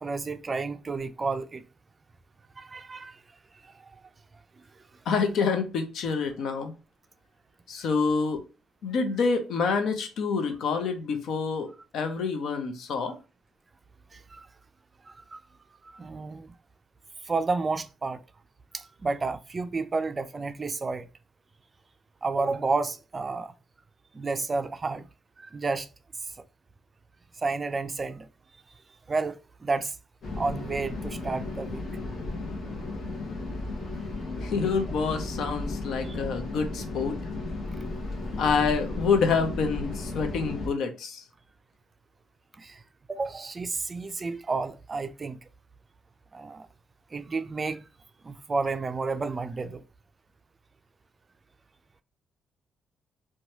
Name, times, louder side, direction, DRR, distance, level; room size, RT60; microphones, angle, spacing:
voice 1, 0.0-1.6 2.6-3.2 14.1-14.4 15.1-15.4 15.8-16.5 17.3-18.2 18.7-21.1 22.2-23.5 24.1-25.0 25.5-25.9 27.4-28.3 29.1-29.9 30.4-31.8 36.0-36.2 42.6-42.8 43.1-45.4 46.3-46.7 47.1-47.8 48.2-49.8, right 3 dB, 30° right, 0.3 m, -31 dB
voice 2, 5.1-6.7 7.7-8.4 8.8-11.7 11.9-13.1 34.4-37.2 38.4-41.2, left 5 dB, 75° left, 0.6 m, -27 dB
sound 1, 30.2-40.7, left 2 dB, 50° left, 1.0 m, -34 dB
3.0 x 2.2 x 2.6 m
cardioid pair, 90°, 0 cm